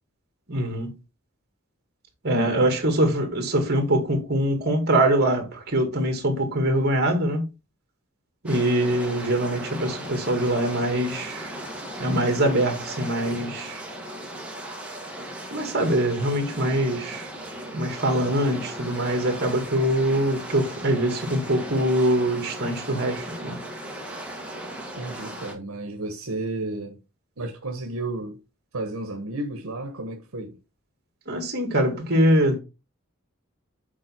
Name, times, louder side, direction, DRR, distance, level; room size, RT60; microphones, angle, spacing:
voice 1, 0.5-0.9 2.2-7.4 8.4-11.6 12.0-13.8 15.5-17.3 17.7-23.6 31.3-32.6, right 1 dB, 50° right, 2.1 m, -23 dB
sound 1, 8.5-25.5, right 1 dB, 5° right, 1.7 m, -37 dB
voice 2, 25.0-27.0 27.4-28.4 28.7-30.6, right 2 dB, 80° right, 1.2 m, -32 dB
7.4 x 4.2 x 4.4 m
head